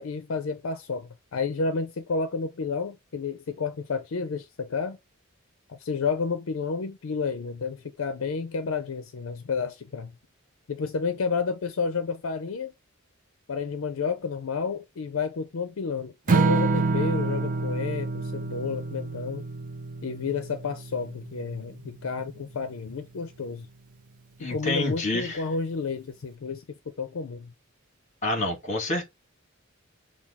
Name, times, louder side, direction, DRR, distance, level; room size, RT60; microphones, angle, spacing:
voice 1, 0.0-5.0 5.7-10.1 10.7-12.7 13.5-19.4 20.0-23.7 24.5-27.5, left 5 dB, 70° left, 0.5 m, -31 dB
Strum, 16.3-22.5, right 4 dB, 40° right, 0.5 m, -28 dB
voice 2, 24.4-25.4 28.2-29.1, left 2 dB, 35° left, 1.3 m, -28 dB
5.9 x 2.3 x 3.4 m
head